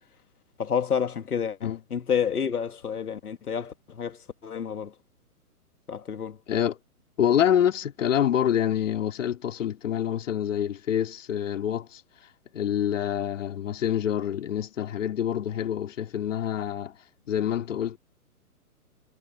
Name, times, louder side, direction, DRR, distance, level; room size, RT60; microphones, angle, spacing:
voice 1, 0.6-4.9 5.9-6.4, left 7 dB, 70° left, 1.9 m, -29 dB
voice 2, 7.2-12.0 12.5-17.0 17.3-18.0, left 10 dB, 55° left, 2.8 m, -26 dB
figure-of-eight pair, 130°, 46 cm